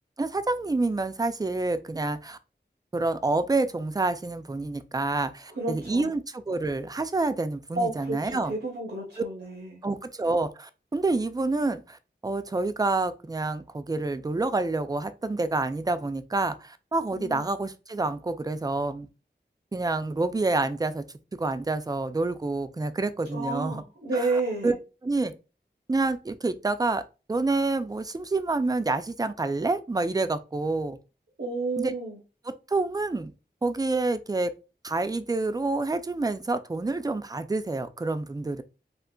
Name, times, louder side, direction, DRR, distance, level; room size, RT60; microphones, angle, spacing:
voice 1, 0.2-2.4 2.9-8.5 9.8-19.1 19.7-21.0 21.4-23.8 24.1-24.8 25.0-25.3 25.9-27.0 27.3-31.0 31.8-31.9 32.5-33.3 33.6-34.5 34.8-38.6, right 3 dB, 20° right, 0.3 m, -28 dB
voice 2, 5.5-6.1 7.8-9.7 17.1-17.5 23.3-24.7 31.4-32.2, right 3 dB, 85° right, 0.8 m, -31 dB
3.7 x 2.4 x 2.2 m
wide cardioid pair, 45°, 19 cm